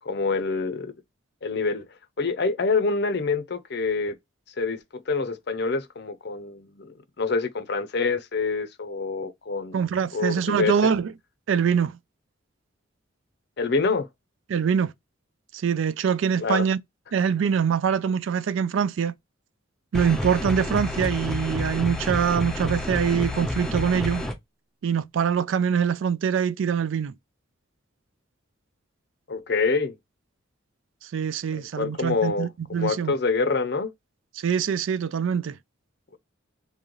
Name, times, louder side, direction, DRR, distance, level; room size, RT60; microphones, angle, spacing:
voice 1, 0.0-0.9 1.4-1.9 2.2-4.2 4.6-9.8 10.1-10.7 13.6-14.1 16.4-16.7 29.3-30.0 31.5-33.9, left 4 dB, 55° left, 0.6 m, -26 dB
voice 2, 9.7-11.1 11.5-11.9 14.5-14.9 15.6-16.8 17.1-19.1 19.9-24.2 24.8-27.1 31.1-33.1 34.4-35.6, right 7 dB, 70° right, 0.3 m, -24 dB
sound 1, 19.9-24.3, left 1 dB, ahead, 0.5 m, -29 dB
3.7 x 2.7 x 3.0 m
head